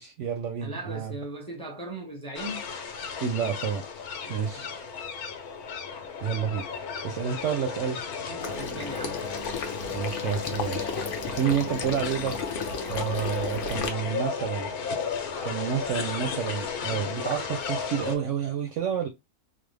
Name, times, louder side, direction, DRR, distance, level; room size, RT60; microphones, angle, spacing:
voice 1, 0.0-1.2 3.2-3.8 4.3-4.7 6.2-6.6 7.0-8.0 9.9-10.9 11.3-12.4 12.9-14.7 15.4-19.1, right 8 dB, 65° right, 0.8 m, -29 dB
voice 2, 0.6-2.6 4.2-4.7 8.3-9.2, right 1 dB, 5° left, 0.8 m, -38 dB
sound 1, 2.4-18.2, left 5 dB, 80° left, 1.2 m, -34 dB
Water / Liquid, 8.4-13.9, left 4 dB, 60° left, 0.6 m, -34 dB
3.2 x 2.0 x 3.3 m
omnidirectional pair, 1.6 m